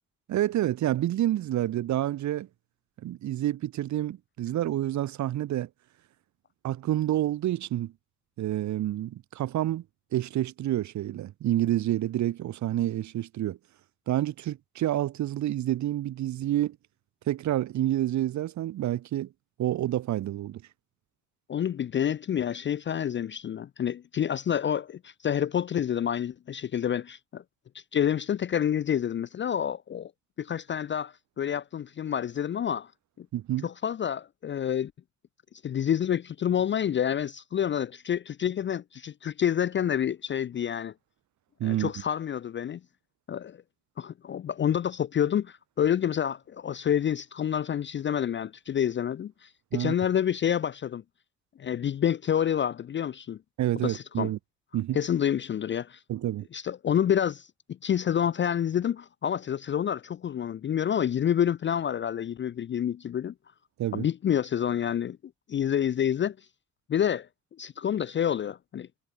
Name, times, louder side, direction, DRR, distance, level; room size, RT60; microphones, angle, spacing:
voice 1, 0.3-2.5 3.0-5.7 6.6-7.9 8.4-9.8 10.1-13.6 14.1-16.8 17.3-19.3 19.6-20.6 33.3-33.7 41.6-41.9 49.7-49.9 53.6-54.4 54.7-55.0 56.1-56.5 63.8-64.1, right 13 dB, 65° right, 0.9 m, -28 dB
voice 2, 21.5-27.4 27.7-30.1 30.4-32.9 33.2-33.3 33.6-34.9 35.6-40.9 41.6-42.8 43.3-43.6 44.0-51.0 51.6-53.4 53.8-54.3 54.9-56.0 56.5-57.5 57.8-63.3 63.9-65.2 65.5-66.4 66.9-67.3 67.6-68.9, left 9 dB, 40° left, 0.5 m, -28 dB
hypercardioid pair, 50°, 31 cm